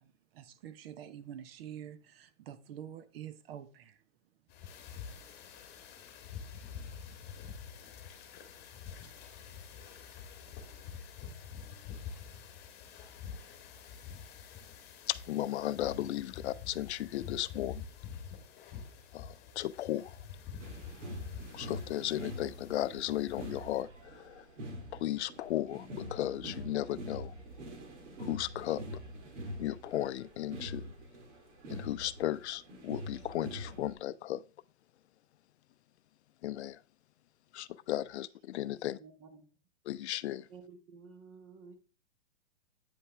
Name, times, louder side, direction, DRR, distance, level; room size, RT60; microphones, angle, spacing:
voice 1, 0.0-5.0, right 10 dB, 55° right, 0.9 m, -48 dB
sound 1, 4.5-23.8, left 7 dB, 30° left, 1.4 m, -47 dB
voice 2, 15.1-17.8 19.1-20.2 21.5-24.5 24.9-27.3 28.2-29.0 29.6-30.9 31.7-34.4 36.4-36.8 37.5-39.0 39.9-40.5, left 13 dB, 65° left, 0.5 m, -35 dB
sound 2, 20.6-33.9, equal, 80° right, 2.5 m, -45 dB
voice 3, 39.0-39.4 40.5-41.7, right 5 dB, 35° right, 1.6 m, -52 dB
8.6 x 5.4 x 3.3 m
hypercardioid pair, 130°, 35 cm